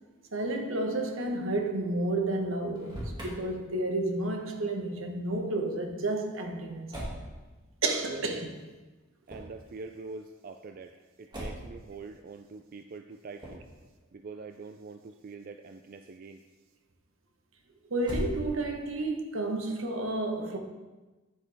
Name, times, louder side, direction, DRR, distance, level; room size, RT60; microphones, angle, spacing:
voice 1, 0.3-6.9 7.8-8.5 17.9-20.6, right 2 dB, 75° right, 1.2 m, -31 dB
Motor vehicle (road), 2.6-3.3 6.9-7.3 9.2-9.6 11.3-11.8 13.4-13.7 18.0-18.8, equal, 20° right, 2.1 m, -37 dB
voice 2, 9.3-10.9 11.2-13.6 14.1-16.4, right 4 dB, 45° right, 0.3 m, -44 dB
9.5 x 8.4 x 3.5 m
head